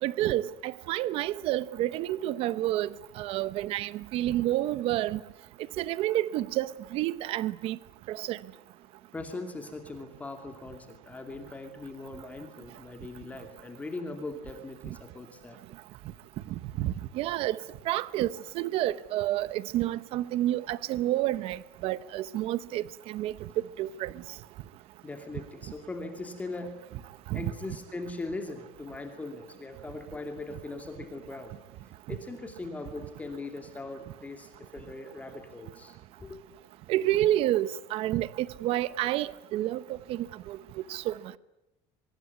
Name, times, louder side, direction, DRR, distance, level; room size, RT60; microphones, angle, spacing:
voice 1, 0.0-5.2 5.8-7.8 8.1-8.4 14.8-14.9 16.8-17.6 17.9-23.3 23.8-24.1 27.3-27.5 36.9-39.8 40.1-40.6 40.9-41.2, right 14 dB, 55° right, 0.9 m, -29 dB
voice 2, 9.1-15.6 25.0-26.8 27.3-31.5 32.1-36.4, left 2 dB, 15° left, 2.6 m, -40 dB
24.0 x 22.5 x 9.5 m
cardioid pair, 160°, 12 cm